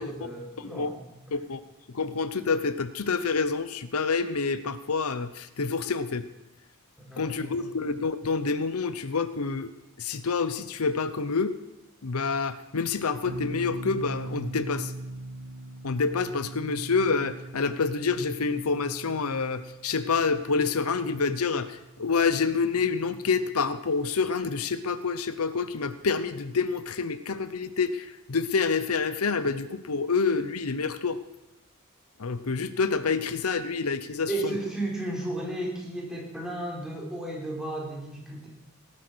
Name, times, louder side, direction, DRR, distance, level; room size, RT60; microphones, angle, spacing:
voice 1, 0.0-1.4 7.0-7.5 34.3-38.5, right 2 dB, ahead, -2 dB, 3.7 m, -34 dB
voice 2, 1.3-1.6 1.9-6.3 7.2-9.7 10.0-11.6 12.0-14.9 15.8-31.2 32.2-34.5, left 4 dB, 80° left, 13 dB, 0.8 m, -27 dB
sound 1, 13.2-23.8, right 1 dB, 65° right, 1.3 m, -41 dB
18.0 x 10.0 x 6.3 m, 0.93 s
head